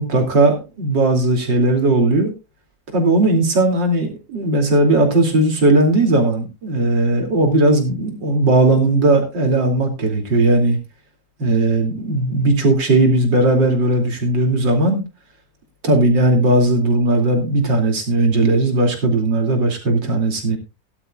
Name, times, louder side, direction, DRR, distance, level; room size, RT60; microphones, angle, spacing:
voice 1, 0.0-2.3 2.9-10.8 11.4-15.0 15.8-20.6, right 2 dB, 80° right, 3 dB, 3.5 m, -17 dB
17.5 x 11.5 x 2.4 m, 0.27 s
omnidirectional pair, 2.0 m